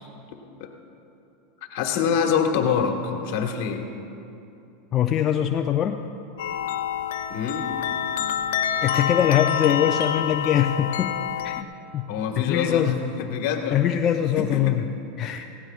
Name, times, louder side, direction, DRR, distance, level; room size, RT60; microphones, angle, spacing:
voice 1, 1.7-3.8 7.3-7.7 12.1-12.9 13.2-13.8 14.4-14.7, left 7 dB, 65° left, 3 dB, 1.6 m, -25 dB
voice 2, 4.9-6.0 8.8-11.2 11.4-11.7 11.9-13.0 13.7-14.8 15.2-15.4, left 10 dB, 35° left, 3 dB, 0.5 m, -23 dB
sound 1, 6.4-11.6, left 9 dB, 85° left, 0.5 m, -27 dB
19.0 x 16.5 x 2.4 m, 2.8 s
supercardioid pair, 130°, 0 cm